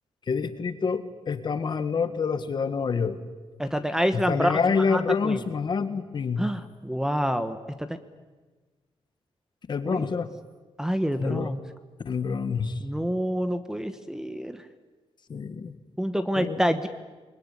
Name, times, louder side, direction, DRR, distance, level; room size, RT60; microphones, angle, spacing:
voice 1, 0.3-3.2 4.1-6.4 9.7-10.3 11.2-11.5 12.1-12.8 15.3-15.7 16.4-16.6, left 5 dB, 45° left, 10 dB, 1.8 m, -27 dB
voice 2, 3.6-4.6 4.9-5.4 6.4-8.0 9.8-10.1 10.8-11.6 12.8-14.6 16.0-16.9, equal, 5° right, 9 dB, 1.1 m, -27 dB
28.0 x 21.5 x 9.7 m, 1.3 s
wide cardioid pair, 165°, 11 cm